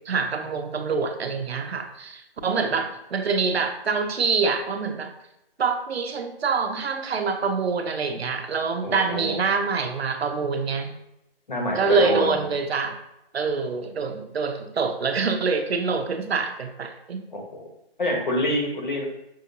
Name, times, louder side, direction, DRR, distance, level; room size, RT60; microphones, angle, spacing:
voice 1, 0.0-5.1 5.6-10.9 11.7-13.0 13.3-17.2, right 5 dB, 85° right, 7 dB, 0.7 m, -25 dB
voice 2, 8.8-9.4 11.5-12.4 17.3-17.6 18.0-19.0, equal, 50° left, 0 dB, 1.2 m, -26 dB
5.5 x 2.7 x 2.7 m, 0.86 s
hypercardioid pair, 175°, 31 cm